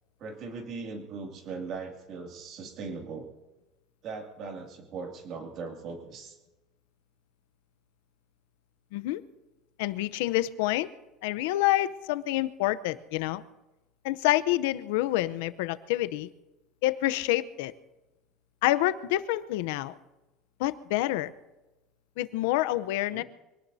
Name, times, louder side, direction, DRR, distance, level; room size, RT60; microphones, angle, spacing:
voice 1, 0.2-3.3 4.0-6.4 23.1-23.2, right 4 dB, 40° right, 3 dB, 2.4 m, -39 dB
voice 2, 9.8-10.9 11.2-13.4 14.0-16.3 16.8-17.7 18.6-19.9 20.6-21.3 22.2-23.2, left 16 dB, 90° left, 15 dB, 0.7 m, -27 dB
25.0 x 18.5 x 2.7 m, 1.1 s
cardioid pair, 165°, 0 cm